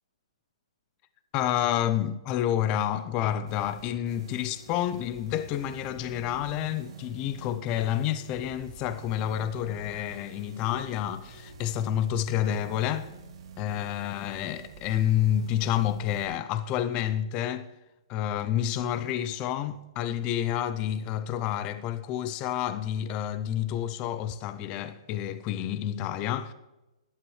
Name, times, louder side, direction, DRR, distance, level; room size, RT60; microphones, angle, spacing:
voice 1, 1.3-13.1 13.6-17.6 18.1-26.5, left 11 dB, 30° left, 0.5 m, -29 dB
sound 1, 3.5-16.3, right 4 dB, 55° right, 2.4 m, -48 dB
14.0 x 11.5 x 3.2 m
hypercardioid pair, 150°, 3 cm